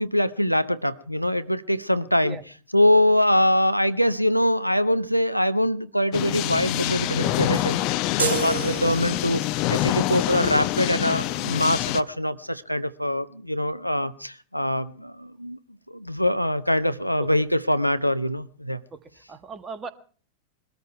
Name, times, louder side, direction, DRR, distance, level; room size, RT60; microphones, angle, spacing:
voice 1, 0.0-2.4 2.7-7.8 8.2-15.6 15.9-18.8, left 1 dB, 90° left, 13 dB, 0.7 m, -23 dB
sound 1, 6.1-12.0, left 16 dB, 40° left, 0.8 m, -26 dB
sound 2, 8.2-9.5, right 5 dB, 65° right, 1.8 m, -29 dB
voice 2, 19.3-19.9, right 4 dB, 20° right, 11 dB, 1.6 m, -37 dB
22.0 x 13.5 x 4.6 m, 0.42 s
figure-of-eight pair, 90°, 0 cm